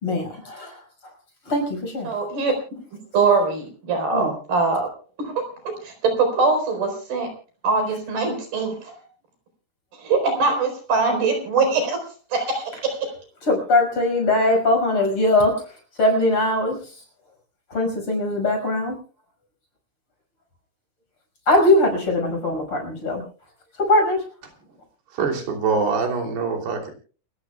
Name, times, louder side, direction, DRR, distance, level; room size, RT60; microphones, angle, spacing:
voice 1, 0.0-1.1 1.5-2.1 4.1-4.3 13.4-15.6 16.0-16.8 17.7-19.0 21.5-23.2 23.8-24.2, left 2 dB, 35° left, 3 dB, 6.4 m, -21 dB
voice 2, 2.0-2.5 3.1-4.9 5.2-5.3 5.8-7.3 7.6-9.0 10.0-12.0 12.3-13.0, right 4 dB, 70° right, 5 dB, 6.2 m, -22 dB
voice 3, 25.1-26.9, right 5 dB, 85° right, 3 dB, 5.2 m, -24 dB
28.5 x 14.5 x 2.3 m, 0.39 s
omnidirectional pair, 4.5 m